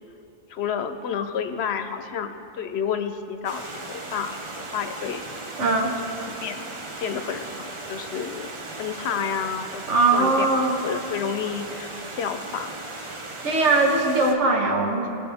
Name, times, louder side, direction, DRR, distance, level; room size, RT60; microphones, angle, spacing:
voice 1, 0.5-4.5 4.7-5.2 6.3-6.7 7.0-9.8 10.1-12.7, left 7 dB, 70° left, 9 dB, 0.8 m, -30 dB
Stream, 3.4-14.3, right 2 dB, 30° right, 0.7 m, -37 dB
voice 2, 5.6-6.0 9.9-10.7 13.4-15.1, right 3 dB, 80° right, 1 dB, 1.5 m, -20 dB
18.5 x 7.1 x 3.5 m, 2.9 s
omnidirectional pair, 1.2 m